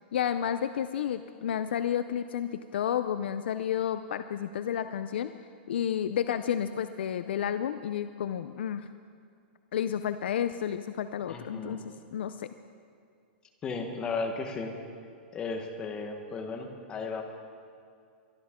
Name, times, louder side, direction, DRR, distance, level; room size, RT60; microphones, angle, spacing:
voice 1, 0.1-5.3 5.7-8.9 9.7-11.8 12.1-12.5, left 9 dB, 70° left, 11 dB, 0.5 m, -31 dB
voice 2, 11.3-11.8 13.6-14.8 15.3-17.2, left 4 dB, 15° left, 3 dB, 1.2 m, -35 dB
23.0 x 12.5 x 3.7 m, 2.4 s
supercardioid pair, 175°, 6 cm